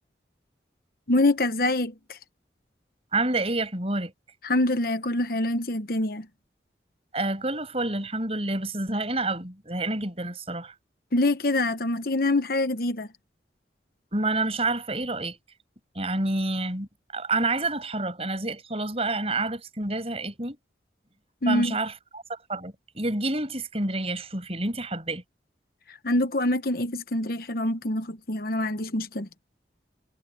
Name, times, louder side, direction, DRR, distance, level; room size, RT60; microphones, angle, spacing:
voice 1, 1.1-1.9 4.4-6.3 11.1-13.1 21.4-21.8 26.0-29.3, left 2 dB, 55° left, 1.1 m, -25 dB
voice 2, 3.1-4.1 7.1-10.7 14.1-15.4 15.9-20.6 21.5-25.2, right 2 dB, 35° right, 6.0 m, -28 dB
head